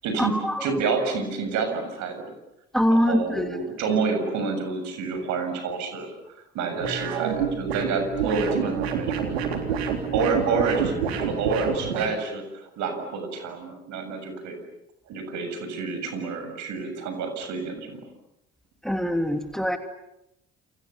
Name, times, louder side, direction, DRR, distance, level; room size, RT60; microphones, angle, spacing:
voice 1, 0.0-2.3 2.9-6.1 6.5-9.6 10.1-14.6 15.1-18.0, right 4 dB, 65° right, 7 dB, 7.1 m, -28 dB
voice 2, 2.7-3.5 18.9-19.8, equal, ahead, 6 dB, 2.9 m, -22 dB
sound 1, 6.8-12.1, right 7 dB, 85° right, 3.8 m, -28 dB
29.0 x 29.0 x 7.1 m, 0.87 s
hypercardioid pair, 55°, 31 cm